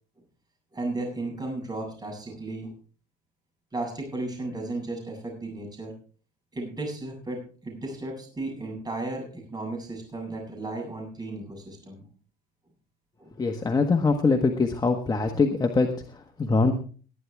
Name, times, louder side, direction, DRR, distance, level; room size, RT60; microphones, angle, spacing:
voice 1, 0.7-2.7 3.7-5.9 6.5-12.0 13.2-13.3, right 2 dB, 25° right, 2 dB, 7.8 m, -34 dB
voice 2, 13.4-16.7, left 4 dB, 25° left, 4 dB, 1.4 m, -23 dB
20.0 x 9.6 x 3.5 m, 0.41 s
cardioid pair, 110°, 17 cm